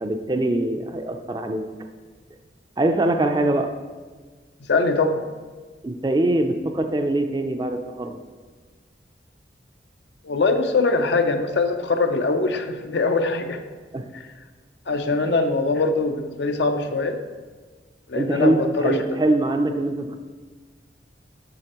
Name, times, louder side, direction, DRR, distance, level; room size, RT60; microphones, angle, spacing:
voice 1, 0.0-1.7 2.8-3.7 5.8-8.2 13.9-14.1 15.2-15.3 18.1-20.2, right 1 dB, 25° right, 6 dB, 0.4 m, -23 dB
voice 2, 4.6-5.2 10.2-13.6 14.9-17.2 18.1-19.0, left 3 dB, 75° left, 7 dB, 0.6 m, -22 dB
7.6 x 7.2 x 3.0 m, 1.4 s
head